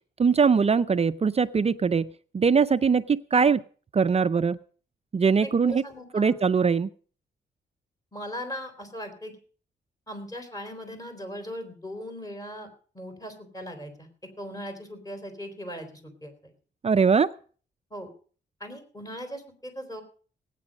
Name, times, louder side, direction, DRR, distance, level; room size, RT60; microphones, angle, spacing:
voice 1, 0.2-2.1 2.3-3.6 3.9-4.6 5.1-5.8 6.1-6.9 16.8-17.3, right 5 dB, 35° right, 12 dB, 0.5 m, -21 dB
voice 2, 5.4-6.4 8.1-9.4 10.1-12.7 12.9-14.1 14.4-16.5 17.9-18.1 18.6-20.0, equal, 20° left, 6 dB, 3.9 m, -39 dB
18.5 x 9.1 x 5.2 m, 0.42 s
cardioid pair, 90°, 19 cm